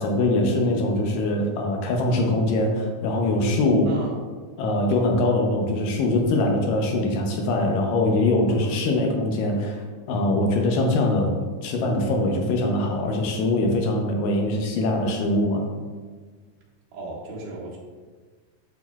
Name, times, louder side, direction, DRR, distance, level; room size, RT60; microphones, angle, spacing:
voice 1, 0.0-3.9 4.6-9.8 10.1-11.3 11.6-15.7, left 2 dB, 75° left, 2 dB, 2.3 m, -22 dB
voice 2, 3.9-4.2 8.5-8.8 16.9-17.8, right 2 dB, 85° right, -5 dB, 3.6 m, -36 dB
12.5 x 4.3 x 2.3 m, 1.4 s
omnidirectional pair, 4.1 m